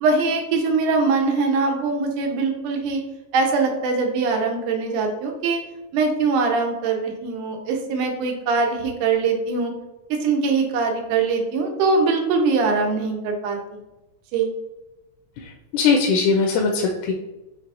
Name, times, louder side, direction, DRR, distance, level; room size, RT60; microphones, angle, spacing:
voice 1, 0.0-3.0 3.3-5.6 5.9-9.7 10.1-13.6 14.3-14.5, right 4 dB, 85° right, 2 dB, 2.3 m, -22 dB
voice 2, 15.7-17.1, left 4 dB, 80° left, 1 dB, 2.0 m, -19 dB
6.0 x 3.4 x 2.5 m, 1.0 s
omnidirectional pair, 3.6 m